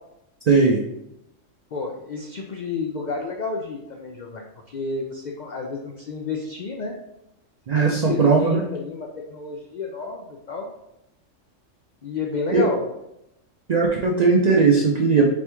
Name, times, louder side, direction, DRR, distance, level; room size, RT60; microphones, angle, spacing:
voice 1, 0.5-0.8 7.7-8.7 12.5-12.7 13.7-15.3, right 4 dB, 70° right, 0 dB, 0.3 m, -18 dB
voice 2, 1.7-7.0 7.7-10.7 12.0-12.8, left 4 dB, 75° left, 1 dB, 0.4 m, -30 dB
4.2 x 3.4 x 3.0 m, 0.85 s
omnidirectional pair, 1.3 m